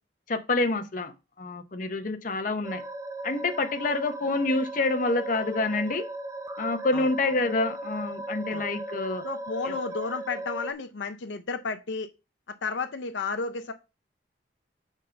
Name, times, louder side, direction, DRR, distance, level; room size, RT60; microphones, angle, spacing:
voice 1, 0.3-1.1 1.4-2.8 3.2-6.1 6.6-9.2 9.6-9.8, left 2 dB, 45° left, 0.8 m, -27 dB
sound 1, 2.6-10.7, right 2 dB, 20° right, 0.4 m, -37 dB
voice 2, 9.2-12.1 12.6-13.7, left 4 dB, 85° left, 0.6 m, -32 dB
5.2 x 3.6 x 5.6 m
head